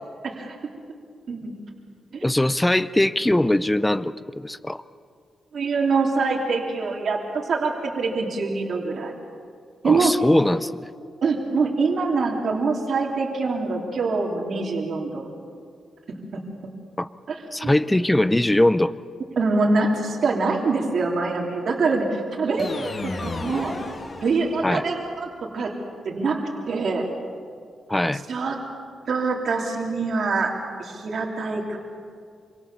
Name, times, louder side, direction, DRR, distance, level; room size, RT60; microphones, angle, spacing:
voice 1, 0.2-0.5 1.3-1.5 2.1-2.3 5.5-9.1 9.8-10.1 11.2-15.3 16.1-16.2 17.3-17.7 19.3-22.7 23.0-23.7 24.2-25.7 26.0-26.4 26.7-27.1 28.3-28.6 29.1-30.5 30.8-31.8, right 4 dB, 55° right, -1 dB, 3.3 m, -24 dB
voice 2, 2.2-4.1 4.4-4.8 9.9-10.9 17.0-17.1 17.5-18.9 24.6-24.8 27.9-28.2, left 1 dB, 10° left, 15 dB, 0.5 m, -21 dB
sound 1, 22.6-24.9, left 2 dB, 30° left, 1.7 m, -33 dB
27.0 x 26.0 x 6.9 m, 2.2 s
wide cardioid pair, 150°, 0 cm